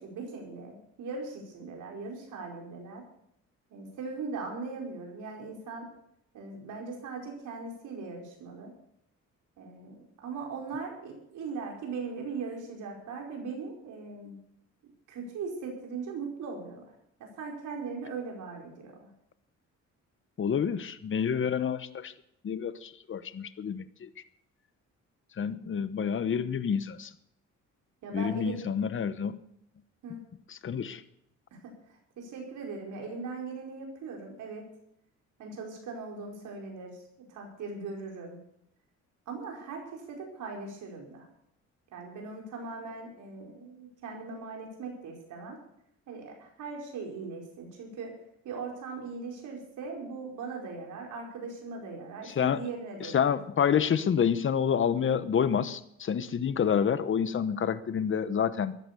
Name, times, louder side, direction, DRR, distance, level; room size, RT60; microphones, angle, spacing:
voice 1, 0.0-3.0 3.7-5.9 6.3-8.7 9.6-14.4 15.1-16.9 17.2-19.1 28.0-28.6 30.0-30.2 31.5-34.6 35.4-37.0 37.3-38.4 39.3-41.2 41.9-45.6 46.1-48.1 48.4-53.4, right 4 dB, 80° right, 0 dB, 5.0 m, -39 dB
voice 2, 20.4-22.1 22.4-24.1 25.4-27.1 28.1-29.4 30.6-31.0 52.3-52.6 53.1-58.8, left 7 dB, 40° left, 13 dB, 1.0 m, -28 dB
15.0 x 11.5 x 6.8 m, 0.74 s
cardioid pair, 90°, 30 cm